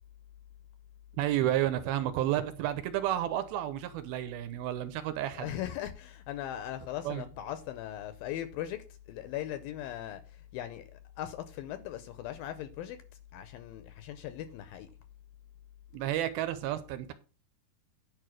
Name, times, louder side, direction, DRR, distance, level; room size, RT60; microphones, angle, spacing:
voice 1, 1.2-5.5 7.0-7.3 15.9-17.1, right 12 dB, 75° right, 2.5 m, -31 dB
voice 2, 5.3-13.0 13.3-14.9, left 12 dB, 80° left, 2.2 m, -39 dB
9.7 x 4.8 x 6.2 m
omnidirectional pair, 4.6 m